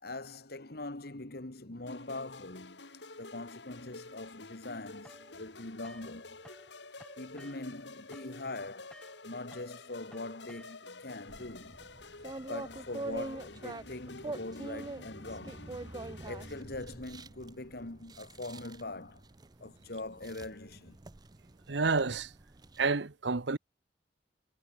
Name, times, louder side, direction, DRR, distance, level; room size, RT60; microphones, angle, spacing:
voice 1, 0.0-2.8 3.2-6.4 7.2-9.0 9.2-11.8 12.5-15.7 16.3-19.2 19.6-21.0, left 2 dB, 60° left, 1.8 m, -42 dB
sound 1, 1.9-16.6, left 3 dB, 80° left, 4.2 m, -50 dB
sound 2, 5.0-6.7 7.0-11.1, equal, 5° left, 1.9 m, -56 dB
sound 3, 11.3-23.0, right 2 dB, 20° right, 0.6 m, -45 dB
voice 2, 21.7-22.3 22.8-23.6, right 4 dB, 80° right, 1.0 m, -29 dB
head